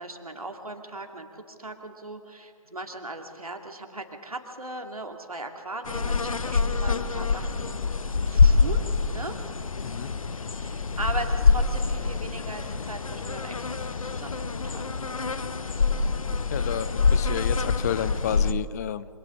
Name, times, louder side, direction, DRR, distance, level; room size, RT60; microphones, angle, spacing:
voice 1, 0.0-7.7 8.3-9.4 10.6-14.9, right 2 dB, 85° right, 4 dB, 2.3 m, -38 dB
sound 1, 5.9-18.5, left 4 dB, 70° left, 0.9 m, -25 dB
voice 2, 16.5-19.1, left 10 dB, 30° left, 16 dB, 0.5 m, -31 dB
27.0 x 25.5 x 3.8 m, 2.7 s
figure-of-eight pair, 135°, 18 cm